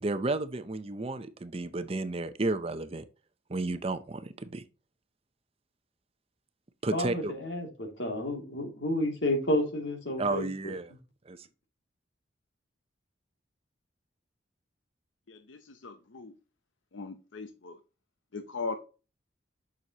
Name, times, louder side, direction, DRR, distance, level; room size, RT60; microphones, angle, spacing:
voice 1, 0.0-3.0 3.5-4.6 6.8-7.3 10.2-10.9 11.3-11.4, right 2 dB, 30° right, 0.6 m, -32 dB
voice 2, 6.9-10.7, left 1 dB, 70° left, 2.6 m, -31 dB
voice 3, 15.3-16.3 16.9-17.8 18.3-18.8, left 4 dB, 90° left, 0.8 m, -39 dB
6.9 x 6.3 x 2.9 m
head